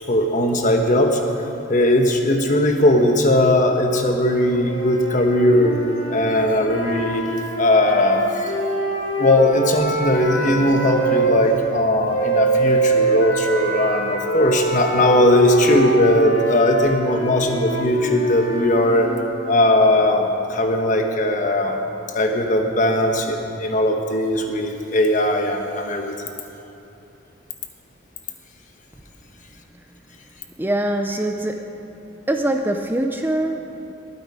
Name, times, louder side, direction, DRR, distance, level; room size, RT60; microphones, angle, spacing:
voice 1, 0.1-1.2 1.7-5.8 6.1-7.2 7.6-8.5 9.2-19.1 19.5-21.8 22.1-26.1, left 1 dB, 40° left, 3 dB, 1.1 m, -18 dB
sound 1, 4.4-11.4 12.1-19.3, right 3 dB, 80° left, 1.9 m, -25 dB
voice 2, 30.6-31.8 32.3-33.9, right 1 dB, 10° right, 4 dB, 0.4 m, -23 dB
21.0 x 8.7 x 4.9 m, 2.9 s
head